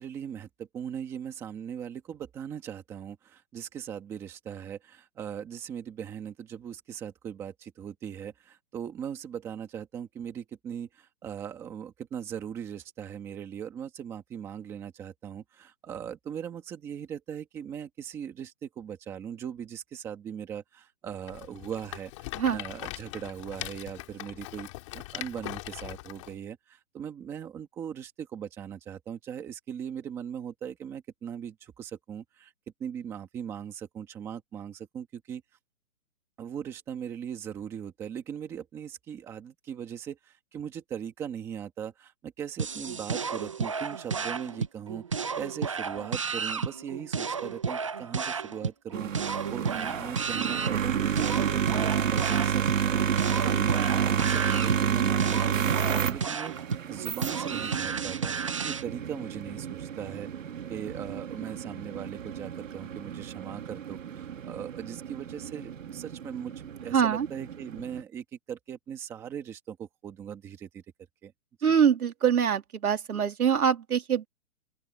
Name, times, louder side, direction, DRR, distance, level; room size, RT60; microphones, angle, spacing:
voice 1, 0.0-32.5 32.8-35.4 36.4-56.5 56.9-58.3 58.6-60.3 60.7-70.8 71.2-71.3 71.7-71.8, right 8 dB, 5° right, 1.4 m, -39 dB
Rattle, 21.2-26.3, left 19 dB, 20° left, 2.5 m, -41 dB
sound 1, 42.6-58.8, right 5 dB, 20° right, 0.7 m, -33 dB
sound 2, 48.9-68.0, right 8 dB, 60° right, 2.4 m, -30 dB
voice 2, 66.9-67.3 71.6-74.3, right 8 dB, 80° right, 3.3 m, -24 dB
open air
hypercardioid pair, 175°, 43 cm